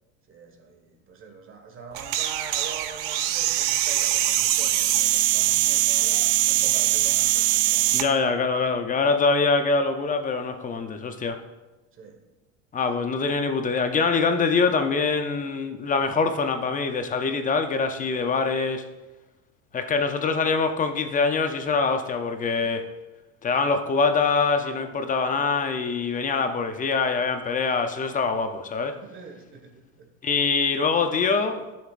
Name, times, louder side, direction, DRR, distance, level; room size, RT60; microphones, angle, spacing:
voice 1, 0.3-8.2 8.5-8.7 11.9-12.2 12.8-13.0 22.6-22.8 26.3-26.5 29.0-30.1, right 4 dB, 30° right, 3 dB, 1.6 m, -44 dB
sound 1, 1.9-8.1, right 14 dB, 55° right, 0.7 m, -22 dB
voice 2, 7.9-11.4 12.7-18.8 19.7-22.9 23.4-29.0 30.2-31.8, left 4 dB, 20° left, 7 dB, 0.6 m, -24 dB
12.5 x 7.2 x 2.5 m, 1.1 s
supercardioid pair, 125°, 40 cm